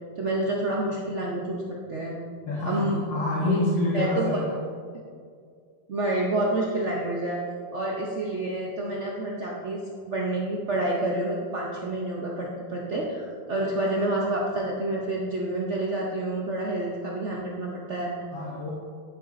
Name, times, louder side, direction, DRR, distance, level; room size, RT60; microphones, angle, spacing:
voice 1, 0.2-1.6 1.9-2.2 2.7-3.0 3.4-3.6 3.9-4.4 5.9-7.4 7.7-9.8 10.1-18.2, right 1 dB, 60° right, -2 dB, 0.7 m, -28 dB
voice 2, 2.5-4.6 18.3-18.7, left 2 dB, 85° left, -4 dB, 1.8 m, -27 dB
10.0 x 7.0 x 2.5 m, 2.2 s
omnidirectional pair, 2.0 m